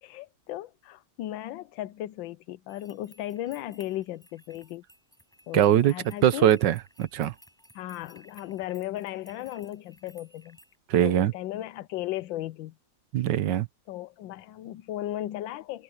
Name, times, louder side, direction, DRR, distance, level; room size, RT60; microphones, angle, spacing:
voice 1, 0.0-4.8 5.5-6.5 7.7-10.6 11.0-12.7 13.9-15.8, left 14 dB, 85° left, 1.4 m, -36 dB
sound 1, 2.7-10.8, equal, ahead, 6.6 m, -57 dB
voice 2, 5.5-5.9 6.2-7.3 10.9-11.3 13.1-13.7, right 11 dB, 75° right, 1.5 m, -22 dB
omnidirectional pair, 2.0 m